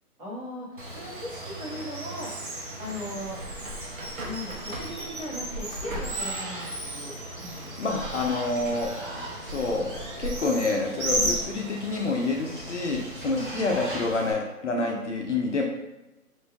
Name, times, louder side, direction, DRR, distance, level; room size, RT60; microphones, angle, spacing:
voice 1, 0.2-2.3 2.8-3.4 4.2-7.7 11.1-11.4 13.2-13.7 14.7-15.1, equal, 20° right, -9 dB, 1.2 m, -37 dB
Water, 0.8-14.3, right 1 dB, 35° right, 0.4 m, -38 dB
Bird, 3.2-12.1, right 1 dB, 65° right, 1.0 m, -35 dB
voice 2, 7.8-8.9 9.4-9.9 10.2-15.6, left 3 dB, 50° left, 0 dB, 0.5 m, -28 dB
3.1 x 2.5 x 3.4 m, 1.0 s
hypercardioid pair, 160°, 45 cm